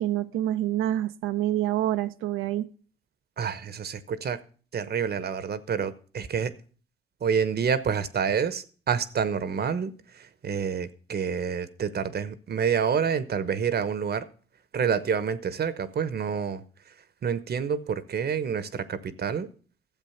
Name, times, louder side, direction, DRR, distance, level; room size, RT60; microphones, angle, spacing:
voice 1, 0.0-2.7, right 13 dB, 80° right, 0.7 m, -27 dB
voice 2, 3.4-4.4 4.7-6.5 7.2-14.3 14.7-16.9 17.2-19.5, right 7 dB, 50° right, 1.0 m, -28 dB
12.5 x 7.5 x 5.8 m
supercardioid pair, 70°, 21 cm